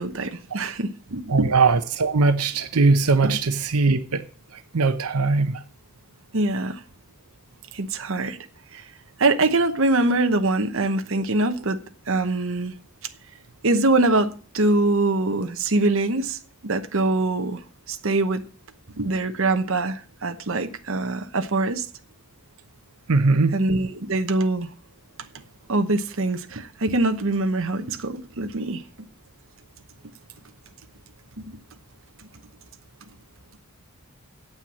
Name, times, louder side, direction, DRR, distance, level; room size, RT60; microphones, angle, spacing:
voice 1, 0.0-1.5 3.2-3.4 6.3-6.8 7.7-8.4 8.7-8.8 9.2-11.8 12.1-12.7 13.6-17.6 17.9-18.4 19.0-21.9 23.5-24.7 25.7-28.8 31.4-31.6, right 2 dB, 60° right, 1.0 m, -23 dB
voice 2, 1.3-4.2 4.7-5.6 23.1-23.5, right 3 dB, 85° right, 0.8 m, -20 dB
9.0 x 7.9 x 7.3 m
head